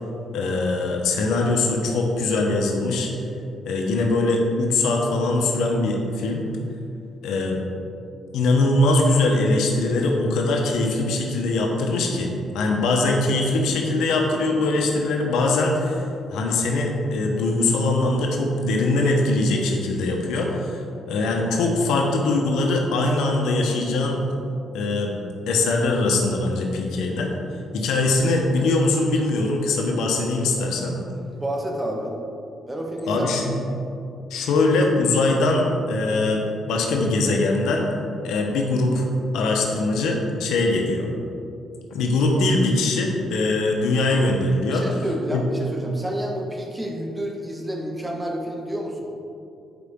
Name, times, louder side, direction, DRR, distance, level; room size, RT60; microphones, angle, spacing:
voice 1, 0.3-3.1 3.6-6.4 7.2-7.6 8.3-16.0 16.3-24.2 24.7-25.2 25.5-27.3 27.7-31.0 33.1-33.5 34.3-37.8 38.2-39.0 39.3-41.1 41.9-45.0 45.3-45.4, left 2 dB, 85° left, 1 dB, 1.0 m, -22 dB
voice 2, 31.3-32.2 32.7-33.8 44.7-49.1, right 1 dB, 10° right, -1 dB, 1.4 m, -30 dB
11.0 x 4.7 x 3.7 m, 2.6 s
cardioid pair, 90°, 0 cm